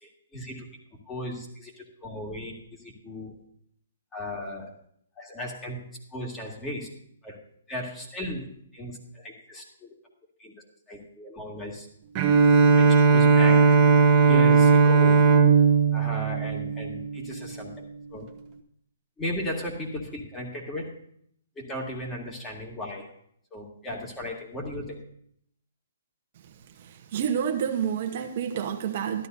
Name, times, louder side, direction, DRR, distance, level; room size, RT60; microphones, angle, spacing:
voice 1, 0.0-0.7 1.1-3.3 4.1-4.7 5.2-5.8 6.1-6.9 7.2-7.4 7.7-8.5 8.7-9.9 10.4-10.5 10.9-11.9 12.8-13.8 14.2-15.3 15.9-17.9 18.1-18.3 19.2-21.0 21.6-23.1 23.5-25.0, left 1 dB, 15° left, -1 dB, 2.4 m, -36 dB
Bowed string instrument, 12.2-17.4, right 4 dB, 30° right, 1.0 m, -18 dB
voice 2, 26.8-29.3, right 8 dB, 50° right, 5 dB, 1.0 m, -29 dB
13.0 x 12.0 x 2.7 m, 0.67 s
hypercardioid pair, 145°, 0 cm